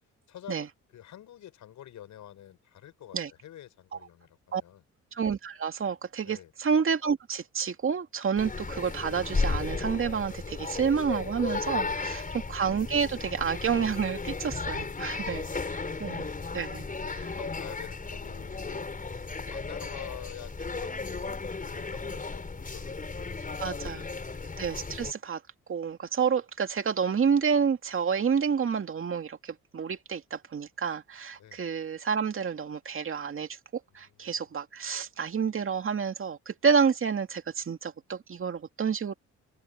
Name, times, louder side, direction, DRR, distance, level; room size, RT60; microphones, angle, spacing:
voice 1, 0.3-4.8 6.2-6.5 16.7-19.2 19.5-21.3 21.6-24.3 31.3-31.6 33.9-34.4, left 11 dB, 75° left, 7.1 m, -48 dB
voice 2, 5.1-16.9 23.6-24.1 24.6-25.4 25.7-39.1, right 6 dB, 45° right, 2.4 m, -29 dB
sound 1, 8.4-25.1, left 4 dB, 25° left, 5.7 m, -35 dB
open air
cardioid pair, 90°, 30 cm